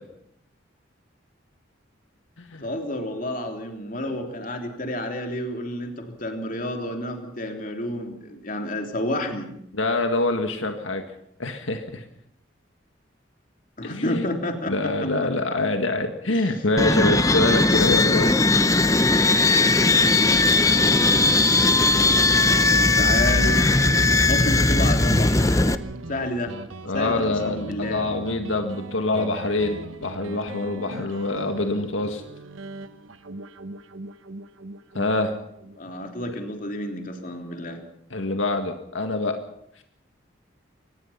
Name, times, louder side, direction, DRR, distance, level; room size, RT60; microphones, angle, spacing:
voice 1, 2.6-9.5 13.8-15.1 16.3-16.6 22.7-23.6 24.2-25.4 26.1-26.5 26.9-28.1 35.8-37.8, left 1 dB, 45° left, 4 dB, 3.2 m, -30 dB
voice 2, 9.7-11.0 11.4-12.0 13.8-14.3 14.7-18.3 26.8-32.2 34.9-35.3 38.1-39.4, left 2 dB, 85° left, 6 dB, 1.9 m, -25 dB
sound 1, 16.8-25.7, left 2 dB, 15° left, 0.7 m, -18 dB
Guitar, 19.2-36.4, right 2 dB, 90° right, 1.2 m, -39 dB
24.0 x 19.5 x 5.8 m, 0.74 s
head